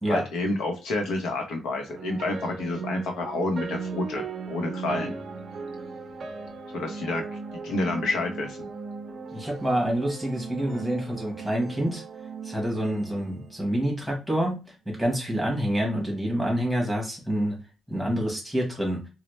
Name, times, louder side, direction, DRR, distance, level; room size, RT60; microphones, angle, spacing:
voice 1, 0.1-5.1 6.7-7.2 7.6-8.7 10.6-10.8, left 2 dB, 90° left, 4 dB, 0.8 m, -29 dB
sound 1, 1.9-14.2, right 4 dB, 35° right, 0.4 m, -38 dB
voice 2, 9.3-12.0 12.4-14.6 14.9-17.6 17.9-19.0, equal, ahead, -1 dB, 1.2 m, -27 dB
4.1 x 2.0 x 3.1 m, 0.30 s
cardioid pair, 175°, 0 cm